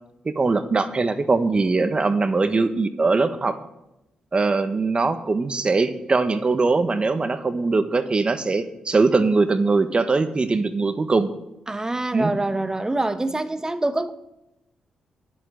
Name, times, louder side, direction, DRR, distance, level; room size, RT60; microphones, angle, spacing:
voice 1, 0.2-3.6 4.3-11.3 12.1-12.3, right 3 dB, 35° right, 1.3 m, -21 dB
voice 2, 11.7-14.1, right 2 dB, 20° right, 1.1 m, -25 dB
10.5 x 7.9 x 8.6 m
hypercardioid pair, 40°, 3 cm